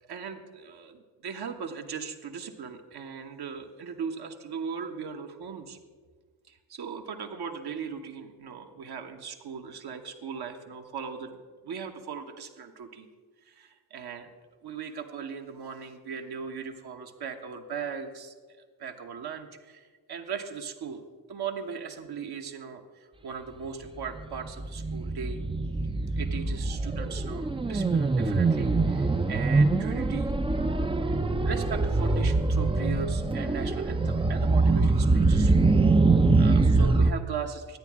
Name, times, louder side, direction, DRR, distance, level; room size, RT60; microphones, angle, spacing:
voice 1, 0.1-5.8 6.5-11.4 11.6-13.1 13.5-14.3 14.6-18.3 18.8-21.0 21.3-25.4 26.2-30.3 31.0-31.2 31.4-35.5 36.4-37.8, right 6 dB, 55° right, 4 dB, 1.2 m, -38 dB
sound 1, 24.0-37.1, right 3 dB, 10° right, 0.6 m, -24 dB
13.0 x 9.1 x 3.6 m, 1.5 s
hypercardioid pair, 45°, 45 cm